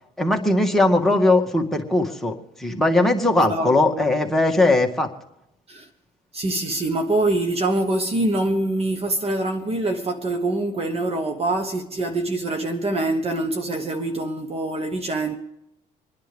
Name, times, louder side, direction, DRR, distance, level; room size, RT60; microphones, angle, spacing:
voice 1, 0.2-5.1, left 2 dB, ahead, 1.9 m, -19 dB
voice 2, 3.4-4.0 5.7-5.9 6.3-15.3, right 2 dB, 35° right, 1.2 m, -24 dB
26.5 x 10.5 x 3.5 m
cardioid pair, 110°, 17 cm